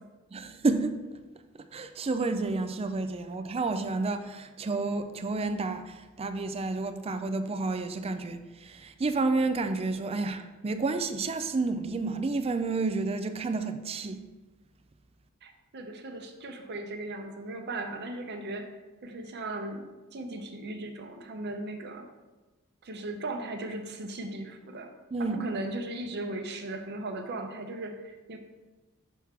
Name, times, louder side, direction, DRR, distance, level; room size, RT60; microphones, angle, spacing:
voice 1, 0.3-1.0 1.7-14.2 25.1-25.4, right 3 dB, 25° right, 0.4 m, -30 dB
voice 2, 15.4-18.7 19.0-19.9 20.1-22.1 22.8-24.9 25.2-28.4, right 2 dB, 50° right, 0.8 m, -37 dB
6.1 x 5.8 x 3.6 m
head